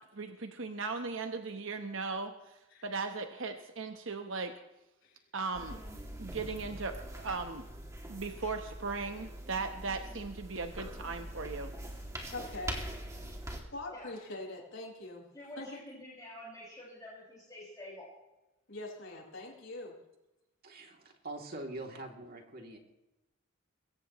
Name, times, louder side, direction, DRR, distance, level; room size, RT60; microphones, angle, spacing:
voice 1, 0.1-2.5 2.8-4.5 5.3-5.8 6.2-7.7 8.1-11.7, right 4 dB, 65° right, 6 dB, 1.1 m, -37 dB
sound 1, 5.5-13.6, right 1 dB, 15° right, 2.5 m, -43 dB
voice 2, 12.3-12.8 13.7-15.2 15.6-15.8 18.7-19.9, left 2 dB, 65° left, -2 dB, 5.6 m, -43 dB
voice 3, 15.3-18.1, left 1 dB, 15° left, -7 dB, 6.0 m, -48 dB
voice 4, 20.6-22.8, right 2 dB, 45° right, 2 dB, 2.9 m, -44 dB
21.5 x 17.5 x 3.1 m, 0.97 s
head